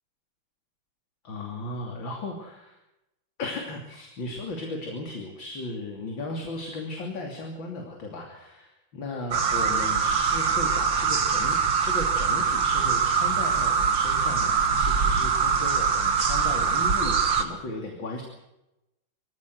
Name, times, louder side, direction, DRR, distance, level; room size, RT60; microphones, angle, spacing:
voice 1, 1.2-2.8 3.4-11.6 11.8-18.2, left 2 dB, 75° left, 2 dB, 3.6 m, -36 dB
sound 1, 9.3-17.4, right 5 dB, 75° right, 2.6 m, -23 dB
24.0 x 16.0 x 8.0 m, 0.92 s
omnidirectional pair, 2.1 m